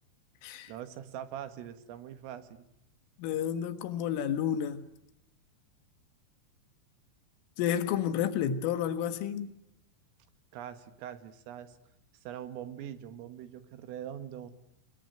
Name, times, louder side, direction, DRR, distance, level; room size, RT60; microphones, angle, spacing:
voice 1, 0.7-2.7 10.5-11.8 12.3-14.5, right 10 dB, 90° right, 4.4 m, -42 dB
voice 2, 3.2-4.8 7.6-9.5, left 9 dB, 80° left, 4.1 m, -30 dB
29.0 x 21.0 x 9.3 m
omnidirectional pair, 5.7 m